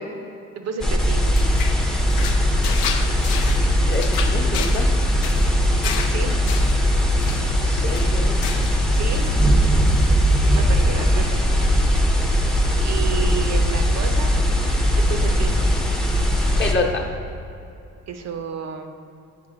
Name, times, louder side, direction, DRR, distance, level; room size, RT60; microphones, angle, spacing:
voice 1, 0.5-1.4 6.1-6.3 8.9-9.3 10.5-11.4 11.9-12.1 12.7-14.3 15.0-15.7 18.1-19.0, right 6 dB, 60° right, 6 dB, 0.6 m, -31 dB
sound 1, 0.8-16.7, equal, ahead, 0.6 m, -19 dB
sound 2, 1.0-8.9 9.1-9.5 9.8-10.6, left 7 dB, 85° left, 0.6 m, -33 dB
voice 2, 3.4-4.8 7.4-8.4 16.6-17.0, left 3 dB, 35° left, 0 dB, 0.9 m, -28 dB
7.6 x 3.4 x 4.9 m, 2.6 s
cardioid pair, 90°, 30 cm